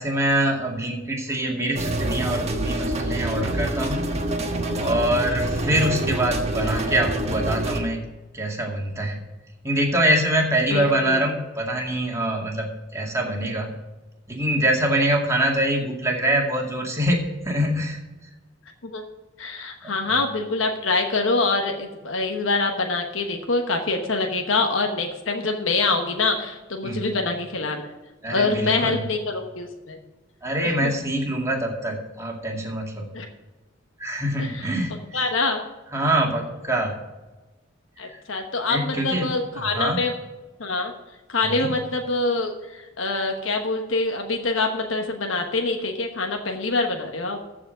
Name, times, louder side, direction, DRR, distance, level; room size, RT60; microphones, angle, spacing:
voice 1, 0.0-4.1 4.8-8.1 8.3-9.2 9.6-13.7 14.3-18.3 26.8-27.1 28.2-29.0 30.4-33.0 34.0-35.0 35.9-36.9 38.0-38.2 38.7-40.0 41.4-41.8, right 1 dB, 15° right, -1 dB, 2.2 m, -24 dB
sound 1, 1.7-7.8, right 1 dB, 35° right, 1.3 m, -26 dB
voice 2, 10.7-11.2 18.8-19.0 19.4-27.9 28.3-30.0 30.6-30.9 33.1-33.3 34.4-34.7 35.1-35.6 38.0-40.1 40.6-40.9 41.3-47.4, left 3 dB, 70° left, 3 dB, 1.1 m, -25 dB
14.0 x 5.0 x 6.6 m, 1.1 s
head